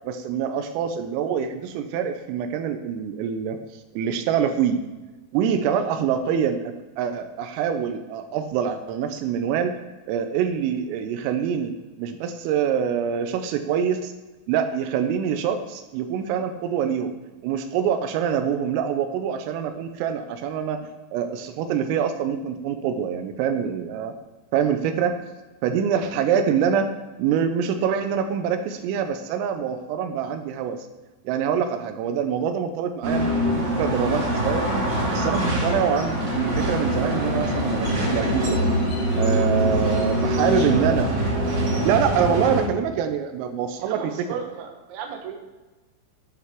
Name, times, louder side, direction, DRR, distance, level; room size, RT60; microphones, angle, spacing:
voice 1, 0.0-3.6 3.9-4.8 5.3-9.8 10.1-11.7 12.0-14.1 14.5-17.1 17.4-24.1 24.5-25.2 25.6-26.9 27.2-30.9 31.3-34.6 35.1-38.7 39.2-41.1 41.8-44.4, right 8 dB, 85° right, 7 dB, 3.4 m, -25 dB
voice 2, 25.8-26.2 40.1-41.1 43.8-45.3, right 6 dB, 65° right, 2 dB, 2.9 m, -36 dB
sound 1, 33.0-42.6, right 1 dB, 40° right, 1.6 m, -24 dB
Subway metro underground, 33.5-41.2, left 5 dB, 75° left, 3.9 m, -40 dB
11.5 x 8.0 x 4.6 m, 1.2 s
omnidirectional pair, 5.9 m